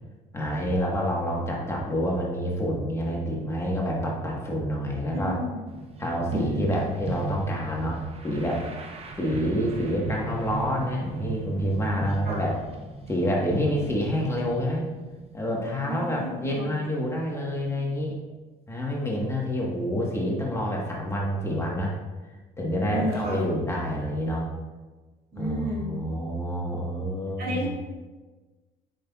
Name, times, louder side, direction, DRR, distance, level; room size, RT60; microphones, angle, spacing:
voice 1, 0.3-5.4 6.0-8.6 9.2-12.5 13.1-14.9 15.3-18.1 18.7-21.9 22.6-24.5 25.3-27.7, equal, 15° left, -3 dB, 1.3 m, -28 dB
voice 2, 5.2-5.6 6.3-6.8 11.9-12.0 12.3-12.4 15.9-16.7 22.9-23.5 25.3-25.9 27.4-27.7, right 1 dB, 65° right, -4 dB, 2.0 m, -32 dB
sound 1, 5.7-16.0, right 3 dB, 35° right, 1.0 m, -37 dB
8.5 x 5.4 x 2.4 m, 1.3 s
cardioid pair, 110°, 17 cm